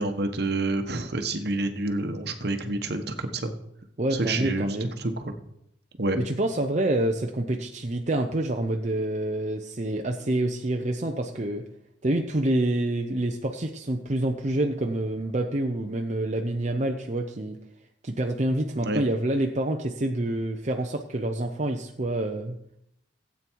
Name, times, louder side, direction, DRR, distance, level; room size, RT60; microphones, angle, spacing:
voice 1, 0.0-3.5 4.1-5.3 6.0-6.2 18.8-19.0, right 2 dB, 60° right, 7 dB, 1.3 m, -28 dB
voice 2, 4.0-4.9 6.1-11.6 12.0-17.6 18.0-22.6, right 1 dB, 40° right, 3 dB, 0.8 m, -27 dB
16.5 x 8.6 x 4.6 m, 0.79 s
head